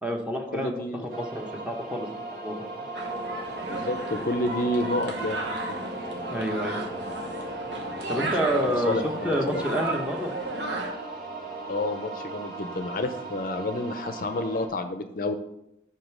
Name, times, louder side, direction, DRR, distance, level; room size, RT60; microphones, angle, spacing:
voice 1, 0.0-2.6 6.3-6.8 8.1-10.3, equal, 5° right, 1 dB, 0.9 m, -29 dB
voice 2, 0.5-1.1 3.6-5.4 5.7-5.8 8.5-9.6 11.7-15.3, left 2 dB, 50° left, 8 dB, 0.5 m, -30 dB
sound 1, 1.1-14.7, right 1 dB, 55° right, 1.3 m, -37 dB
sound 2, 2.9-10.9, right 2 dB, 85° right, 1.2 m, -34 dB
5.6 x 5.1 x 6.1 m, 0.82 s
head